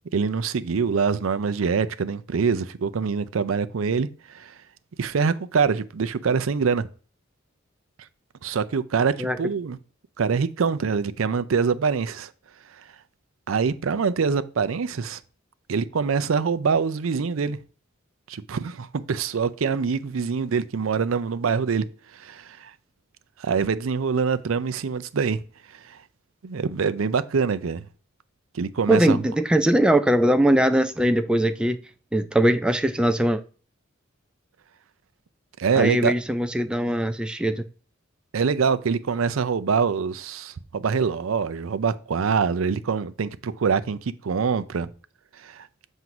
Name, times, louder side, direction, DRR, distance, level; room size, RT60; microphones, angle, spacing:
voice 1, 0.1-4.5 5.0-6.9 8.4-9.8 10.2-12.3 13.5-15.2 15.7-17.6 18.3-21.8 22.1-22.7 23.4-25.4 25.8-26.0 26.4-27.9 28.5-29.2 35.6-36.1 38.3-44.9 45.4-45.7, right 5 dB, 85° right, 0.5 m, -24 dB
voice 2, 28.9-31.8 32.1-33.4 35.8-37.6, right 1 dB, 5° right, 0.3 m, -21 dB
7.7 x 2.7 x 5.8 m
head